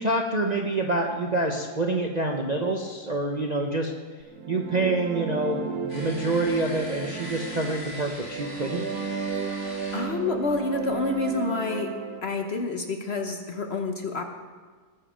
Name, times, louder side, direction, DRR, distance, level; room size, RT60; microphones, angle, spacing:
voice 1, 0.0-3.9 4.5-8.8, right 2 dB, 35° right, 1 dB, 0.7 m, -27 dB
sound 1, 4.3-12.2, right 6 dB, 65° right, 1.3 m, -34 dB
sound 2, 5.9-11.1, left 1 dB, 60° left, 3.0 m, -42 dB
voice 2, 9.6-11.9 12.2-14.2, left 3 dB, 45° left, 4 dB, 1.0 m, -28 dB
19.0 x 7.3 x 5.1 m, 1.5 s
omnidirectional pair, 1.8 m